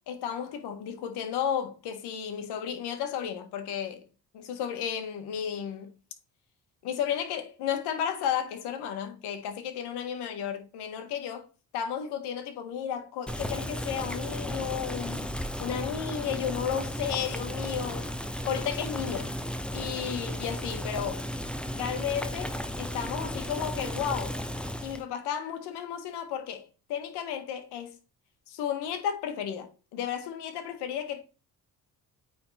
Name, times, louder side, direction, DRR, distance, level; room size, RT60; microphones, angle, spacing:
voice 1, 0.1-4.1 4.3-5.9 6.8-11.5 11.7-15.3 15.6-19.3 19.7-21.3 21.7-24.4 24.8-28.0 28.5-31.2, left 8 dB, 90° left, 1.6 m, -33 dB
Boiling, 13.3-25.0, equal, 5° left, 0.8 m, -34 dB
8.9 x 3.9 x 4.2 m
cardioid pair, 90°, 39 cm